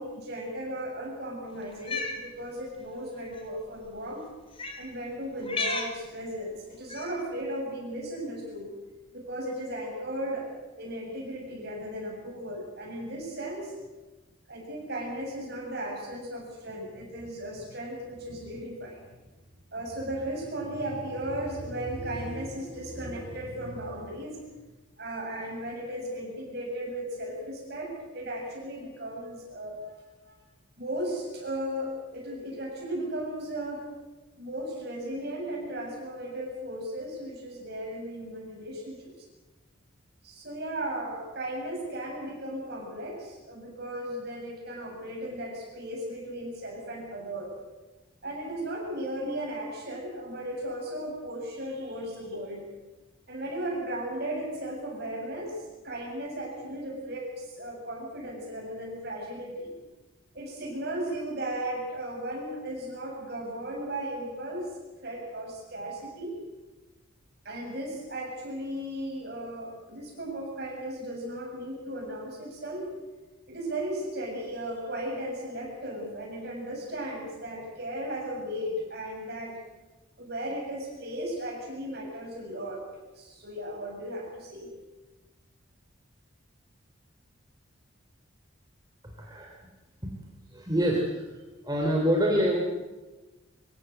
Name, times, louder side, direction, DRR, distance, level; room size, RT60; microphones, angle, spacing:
voice 1, 0.0-4.3 4.8-8.7 9.1-10.5 10.8-13.7 14.5-19.0 19.7-24.4 25.0-30.0 30.3-30.4 30.8-33.8 34.4-39.3 40.2-47.5 48.2-52.6 53.3-59.7 60.3-64.7 65.0-66.4 67.4-72.9 73.5-79.5 80.2-82.8 83.2-84.7, right 1 dB, 50° right, -1 dB, 7.4 m, -36 dB
Cat, 1.7-2.2 3.2-3.4 4.5-4.8 5.4-5.9 6.9-7.2, left 3 dB, 25° left, 2.5 m, -33 dB
voice 2, 89.2-89.6 90.0-90.1 90.5-91.3 91.6-92.6, equal, 20° right, -1 dB, 3.0 m, -26 dB
24.5 x 15.5 x 7.9 m, 1.2 s
head